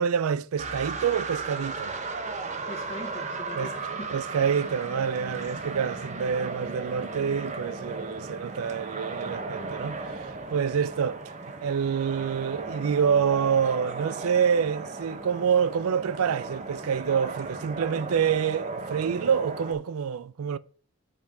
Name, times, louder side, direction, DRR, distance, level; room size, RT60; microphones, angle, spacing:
voice 1, 0.0-1.9 3.6-10.0 10.5-11.2 11.6-20.6, right 7 dB, 75° right, 0.4 m, -27 dB
sound 1, 0.6-19.7, right 3 dB, 30° right, 0.9 m, -36 dB
voice 2, 2.7-4.1, left 1 dB, 30° left, 0.8 m, -41 dB
7.5 x 4.6 x 5.2 m
head